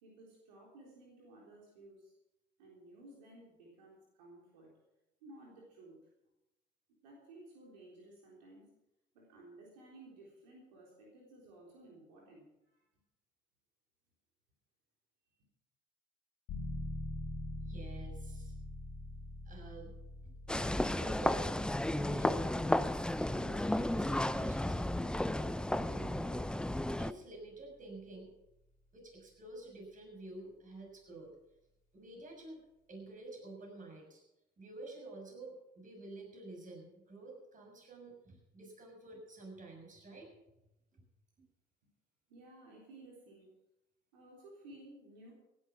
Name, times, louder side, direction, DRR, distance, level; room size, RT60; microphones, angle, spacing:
voice 1, 0.0-2.1 2.6-4.8 5.2-6.0 7.0-8.7 9.1-12.8 42.3-43.5 44.1-45.3, right 2 dB, 85° right, -2 dB, 3.7 m, -56 dB
sound 1, 16.5-27.0, left 1 dB, 70° left, 2.9 m, -46 dB
voice 2, 17.6-18.5 19.4-19.9 20.5-26.4 26.9-28.3 28.9-31.3 31.9-32.6 32.9-34.2 34.6-40.3 40.9-41.0, right 2 dB, 40° right, 2 dB, 6.7 m, -50 dB
sound 2, 20.5-27.1, left 1 dB, 5° left, 0.5 m, -33 dB
16.0 x 11.0 x 5.9 m, 0.90 s
hypercardioid pair, 65°, 21 cm